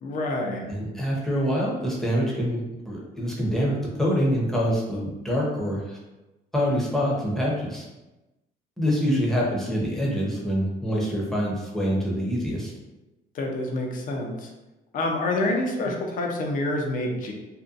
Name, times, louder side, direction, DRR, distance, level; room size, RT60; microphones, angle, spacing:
voice 1, 0.0-0.6 13.3-14.5 14.9-17.3, left 2 dB, 50° left, 1 dB, 0.5 m, -27 dB
voice 2, 0.7-2.6 2.9-6.0 6.5-7.8 8.8-12.7, equal, ahead, -5 dB, 0.7 m, -25 dB
2.6 x 2.2 x 2.4 m, 1.0 s
cardioid pair, 110°, 17 cm